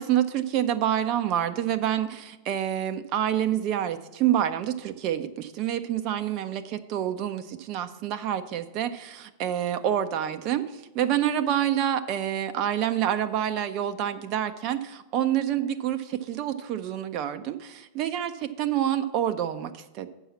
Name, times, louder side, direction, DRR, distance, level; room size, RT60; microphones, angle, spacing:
voice 1, 0.0-20.1, right 10 dB, 40° right, 9 dB, 0.5 m, -27 dB
7.0 x 5.4 x 7.2 m, 1.0 s
figure-of-eight pair, 90°, 0 cm